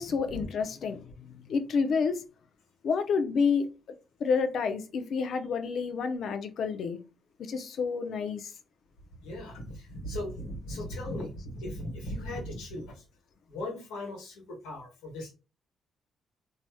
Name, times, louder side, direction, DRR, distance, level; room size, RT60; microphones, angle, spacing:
voice 1, 0.0-2.2 2.8-3.7 4.2-7.0 7.4-8.5, left 5 dB, 65° left, 0.5 m, -29 dB
voice 2, 9.2-13.0 13.5-15.3, left 1 dB, 90° left, 1.2 m, -38 dB
3.2 x 2.7 x 2.3 m
supercardioid pair, 60°, 0 cm